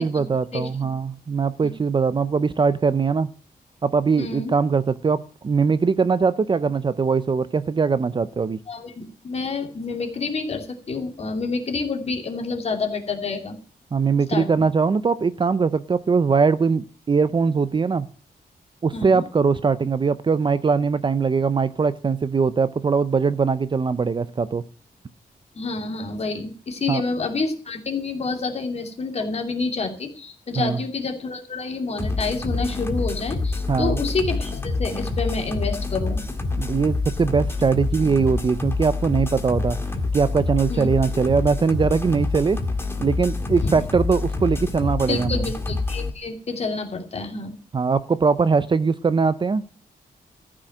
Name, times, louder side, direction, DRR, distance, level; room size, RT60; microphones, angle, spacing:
voice 1, 0.0-3.3 3.8-8.6 13.9-18.1 18.8-24.6 26.9-27.0 30.6-30.8 33.7-34.0 36.6-39.8 40.1-42.6 43.0-45.5 47.7-49.6, right 5 dB, 30° right, 14 dB, 0.6 m, -21 dB
voice 2, 4.2-4.5 8.7-13.6 14.3-14.6 18.9-19.2 25.5-36.2 40.7-40.9 43.6-43.7 45.1-47.6, left 4 dB, 40° left, 4 dB, 2.7 m, -28 dB
sound 1, 32.0-46.1, left 3 dB, 15° left, 1.9 m, -27 dB
14.5 x 6.3 x 8.6 m, 0.40 s
wide cardioid pair, 165°, 16 cm